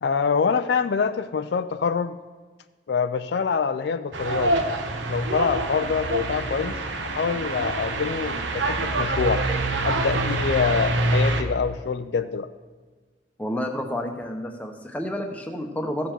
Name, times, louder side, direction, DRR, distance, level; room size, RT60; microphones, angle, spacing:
voice 1, 0.0-2.2 2.9-4.5 5.1-9.4 9.8-12.5, left 5 dB, 65° left, 11 dB, 0.4 m, -25 dB
sound 1, 4.1-11.4, right 2 dB, 80° right, 0.9 m, -26 dB
voice 2, 13.4-16.1, left 1 dB, 10° left, 3 dB, 0.9 m, -30 dB
15.0 x 6.9 x 4.4 m, 1.4 s
head